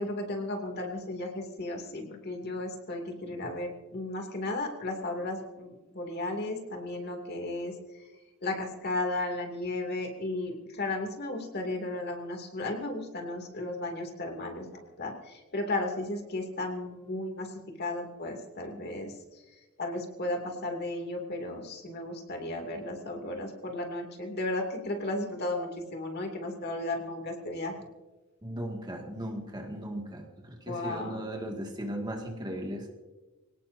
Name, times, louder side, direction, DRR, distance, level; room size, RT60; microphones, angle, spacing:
voice 1, 0.0-7.7 8.4-17.5 17.8-19.4 19.8-27.8 30.7-31.2, left 2 dB, 50° left, 2 dB, 2.6 m, -34 dB
voice 2, 28.4-32.9, right 1 dB, 20° right, 2 dB, 2.0 m, -37 dB
26.0 x 18.0 x 2.7 m, 1.2 s
head